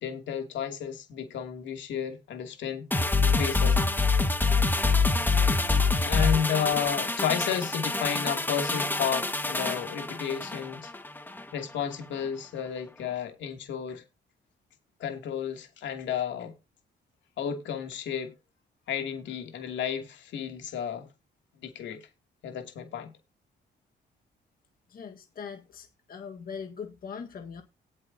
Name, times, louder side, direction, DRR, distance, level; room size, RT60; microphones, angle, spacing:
voice 1, 0.0-2.9 3.2-3.8 6.0-10.9 11.5-14.0 15.0-16.5 17.4-18.3 18.9-21.1 21.6-22.0 22.4-23.1, left 8 dB, 80° left, 2.6 m, -32 dB
sound 1, 2.9-11.5 11.8-11.9, left 3 dB, 10° left, 1.6 m, -26 dB
voice 2, 24.9-27.6, left 6 dB, 50° left, 1.6 m, -41 dB
18.5 x 7.4 x 2.8 m
cardioid pair, 110°, 19 cm